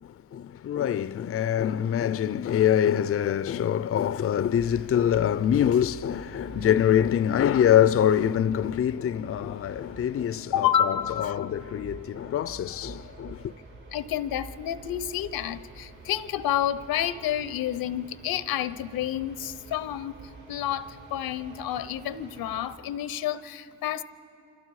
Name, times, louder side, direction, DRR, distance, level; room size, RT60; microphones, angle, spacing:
voice 1, 0.0-13.5, left 10 dB, 40° left, 0.5 m, -25 dB
sound 1, 4.5-22.7, right 3 dB, 60° right, 6.4 m, -47 dB
voice 2, 10.5-11.4 13.9-20.2 20.5-24.0, left 10 dB, 85° left, 0.8 m, -29 dB
27.0 x 26.0 x 4.8 m
cardioid pair, 60°, 35 cm